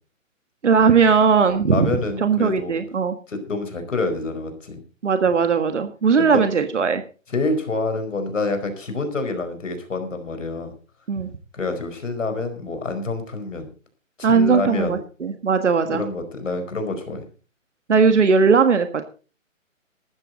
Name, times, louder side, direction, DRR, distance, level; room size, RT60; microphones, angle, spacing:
voice 1, 0.6-1.9 2.2-3.2 5.0-7.0 11.1-11.3 14.2-16.0 17.9-18.9, right 5 dB, 60° right, 9 dB, 1.6 m, -18 dB
voice 2, 1.4-2.8 3.3-4.8 6.2-6.4 7.3-10.7 11.5-13.7 14.2-15.0 15.9-17.2, left 3 dB, 70° left, 8 dB, 4.9 m, -27 dB
15.0 x 13.0 x 4.0 m, 0.37 s
hypercardioid pair, 175°, 40 cm